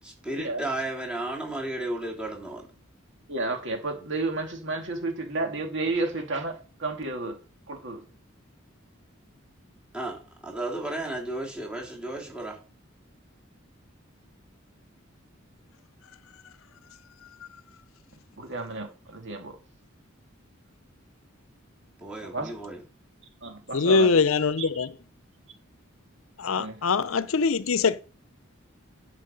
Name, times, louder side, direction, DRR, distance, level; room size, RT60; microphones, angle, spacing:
voice 1, 0.0-2.7 9.9-12.6 22.0-22.8, right 1 dB, 5° right, 3.5 m, -33 dB
voice 2, 3.3-7.4 7.7-8.0 18.4-19.6 22.2-22.5 23.4-24.1 24.7-24.8 26.6-26.8, right 2 dB, 60° right, 2.3 m, -31 dB
voice 3, 23.7-24.9 26.4-28.0, left 4 dB, 85° left, 0.6 m, -23 dB
11.5 x 6.4 x 5.3 m
head